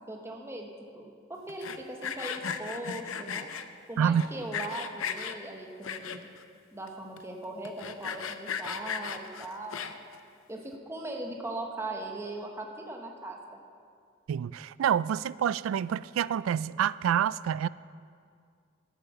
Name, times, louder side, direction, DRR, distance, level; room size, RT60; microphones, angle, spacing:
voice 1, 0.1-3.5 3.9-6.3 6.7-10.0 10.5-13.6, right 2 dB, 15° right, 1.1 m, -39 dB
Sawing, 1.5-3.6 4.2-5.4 5.8-6.4 6.9-7.0 7.2-7.3 7.6-10.1, left 7 dB, 85° left, 0.6 m, -36 dB
voice 2, 14.3-17.7, right 8 dB, 80° right, 0.3 m, -27 dB
11.5 x 8.7 x 6.8 m
head